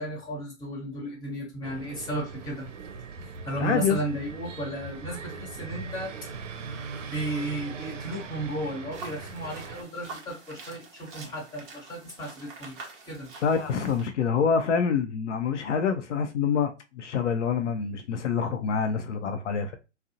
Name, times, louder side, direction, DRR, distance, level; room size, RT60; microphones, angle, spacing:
voice 1, 0.0-2.7 3.5-6.3 7.1-12.8 13.0-13.3, right 1 dB, 10° left, 0.9 m, -34 dB
sound 1, 1.6-9.8, right 4 dB, 85° right, 0.5 m, -40 dB
voice 2, 3.6-4.0 13.4-19.8, left 6 dB, 70° left, 0.5 m, -26 dB
sound 2, 8.9-14.1, right 4 dB, 20° right, 0.5 m, -46 dB
2.6 x 2.0 x 2.6 m
hypercardioid pair, 125°, 37 cm